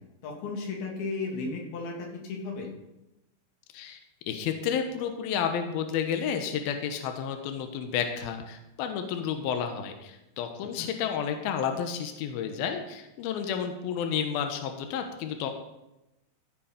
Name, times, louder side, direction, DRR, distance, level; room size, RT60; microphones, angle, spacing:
voice 1, 0.2-2.7 10.8-10.9, left 3 dB, 55° left, 0 dB, 3.6 m, -34 dB
voice 2, 4.3-15.5, left 8 dB, 85° left, 5 dB, 2.1 m, -31 dB
14.0 x 7.5 x 5.1 m, 0.93 s
omnidirectional pair, 5.7 m